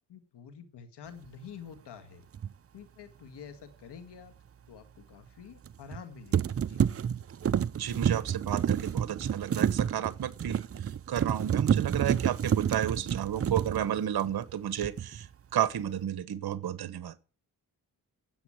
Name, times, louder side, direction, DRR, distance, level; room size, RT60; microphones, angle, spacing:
voice 1, 0.1-2.2 2.7-4.3 4.7-6.8, left 7 dB, 85° left, 2.0 m, -48 dB
sound 1, 2.3-2.5 5.7-6.0 6.3-14.5 14.8-15.3, right 8 dB, 35° right, 0.5 m, -29 dB
voice 2, 7.8-10.6 11.1-15.3 15.5-17.1, right 10 dB, 65° right, 1.1 m, -32 dB
9.6 x 8.1 x 8.9 m
cardioid pair, 75°, 40 cm